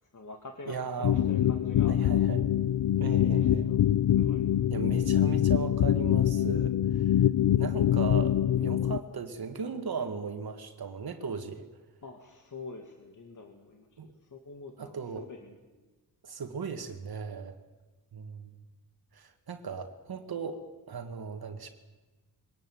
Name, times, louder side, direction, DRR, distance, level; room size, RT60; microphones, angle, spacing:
voice 1, 0.1-2.0 3.2-3.8 4.2-4.4 12.0-15.6, left 4 dB, 50° left, 3 dB, 2.2 m, -46 dB
voice 2, 0.7-1.3 1.9-2.5 3.0-3.7 4.7-7.2 7.6-11.7 14.0-14.1 14.8-15.3 16.2-17.6 18.1-18.6 19.1-21.7, right 5 dB, 65° right, 6 dB, 1.8 m, -37 dB
sound 1, 1.0-9.0, left 11 dB, 75° left, 0.6 m, -25 dB
22.5 x 18.5 x 9.2 m, 1.2 s
wide cardioid pair, 135°, 40 cm